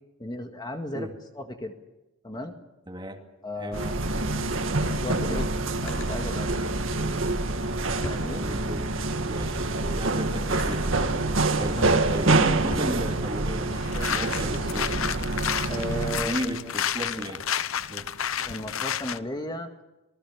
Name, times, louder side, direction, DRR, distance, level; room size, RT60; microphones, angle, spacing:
voice 1, 0.2-1.1 1.3-1.7 2.2-2.5 3.4-4.0 4.9-5.5 5.8-6.5 8.0-8.4 11.8-12.0 15.7-16.6 17.1-17.3 18.5-19.7, equal, 20° left, 5 dB, 1.8 m, -35 dB
voice 2, 2.9-3.2 3.6-3.8 8.1-8.9 9.3-15.2 16.1-17.4 17.9-18.1, right 1 dB, 20° right, 4 dB, 2.4 m, -35 dB
sound 1, 3.7-16.3, right 2 dB, 75° right, 2.0 m, -26 dB
Drawer open or close, 5.8-6.3 7.3-9.0 9.4-11.1 11.7-14.6, left 1 dB, 70° left, 7.0 m, -44 dB
sound 2, 13.7-19.2, left 9 dB, 85° left, 0.8 m, -31 dB
27.5 x 19.5 x 7.3 m, 0.99 s
head